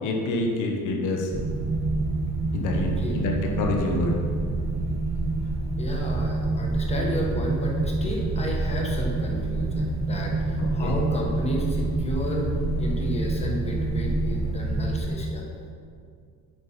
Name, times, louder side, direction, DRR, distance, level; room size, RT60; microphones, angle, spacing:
voice 1, 0.0-1.3 2.5-4.2 10.6-11.0, left 2 dB, 60° left, 1 dB, 1.2 m, -27 dB
sound 1, 1.3-15.1, right 3 dB, 20° right, 0.6 m, -27 dB
voice 2, 2.7-3.2 5.8-15.4, left 1 dB, 20° left, 0 dB, 1.1 m, -32 dB
8.6 x 5.2 x 5.7 m, 2.3 s
cardioid pair, 175°, 35 cm